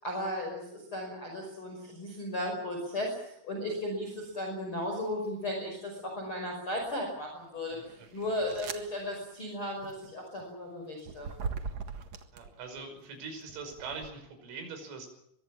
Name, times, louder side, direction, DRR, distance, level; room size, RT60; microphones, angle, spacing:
voice 1, 0.0-7.8 8.1-11.3, left 1 dB, 25° left, 1 dB, 6.0 m, -35 dB
sound 1, 4.1-4.4 5.0-5.8 6.4-12.8 13.4-14.1, right 5 dB, 60° right, 1.8 m, -42 dB
voice 2, 8.2-8.6 12.3-15.1, right 4 dB, 85° right, 6 dB, 8.0 m, -43 dB
23.5 x 22.5 x 7.3 m, 0.77 s
omnidirectional pair, 5.6 m